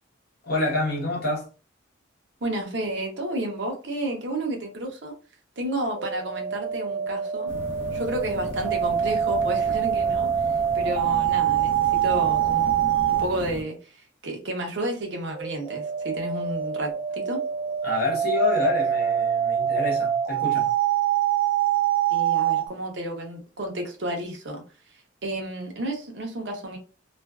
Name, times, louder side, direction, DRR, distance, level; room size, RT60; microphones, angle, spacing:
voice 1, 0.4-1.5 17.8-20.7, left 2 dB, 50° left, 0.9 m, -27 dB
voice 2, 2.4-5.2 5.6-7.5 7.9-10.3 10.7-17.4 22.1-24.6 24.9-26.8, right 1 dB, 60° right, 0.7 m, -31 dB
sound 1, 6.0-13.3 15.3-22.6, right 9 dB, 25° right, 0.3 m, -25 dB
sound 2, 7.5-13.6, left 2 dB, 65° left, 0.6 m, -37 dB
2.4 x 2.2 x 2.3 m
head